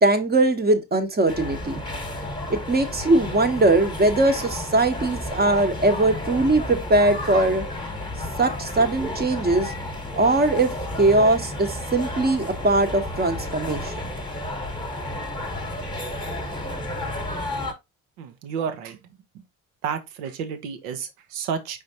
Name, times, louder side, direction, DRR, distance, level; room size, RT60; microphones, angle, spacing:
voice 1, 0.0-1.8 2.5-7.6 8.4-9.7 10.2-10.7 11.0-13.9, right 2 dB, 20° right, 1.0 m, -20 dB
sound 1, 1.3-17.7, left 1 dB, 10° left, 1.3 m, -32 dB
voice 2, 18.2-19.0 19.3-19.4 19.8-21.8, right 7 dB, 75° right, 0.9 m, -31 dB
5.0 x 3.7 x 2.8 m
hypercardioid pair, 55°, 42 cm